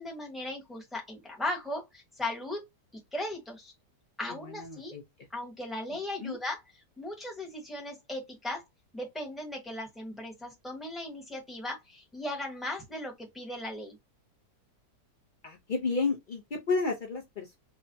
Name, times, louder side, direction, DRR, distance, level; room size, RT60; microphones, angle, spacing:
voice 1, 0.0-2.7 3.1-3.7 4.2-4.9 5.3-6.6 7.0-8.6 8.9-14.0, left 1 dB, ahead, 0.8 m, -37 dB
voice 2, 4.4-5.0 6.2-6.4 15.4-17.6, left 4 dB, 80° left, 0.4 m, -31 dB
4.8 x 2.1 x 2.7 m
omnidirectional pair, 1.8 m